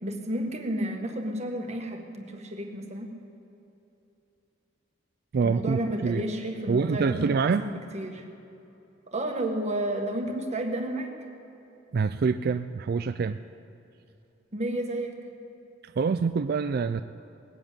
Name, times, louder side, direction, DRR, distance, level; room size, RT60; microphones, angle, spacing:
voice 1, 0.0-3.1 5.4-8.2 9.1-11.1 14.5-15.2, right 1 dB, 35° right, 3 dB, 1.6 m, -32 dB
voice 2, 5.3-6.2 6.7-7.7 11.9-13.4 16.0-17.0, right 5 dB, 55° right, 10 dB, 0.4 m, -26 dB
19.5 x 8.1 x 8.7 m, 2.9 s
head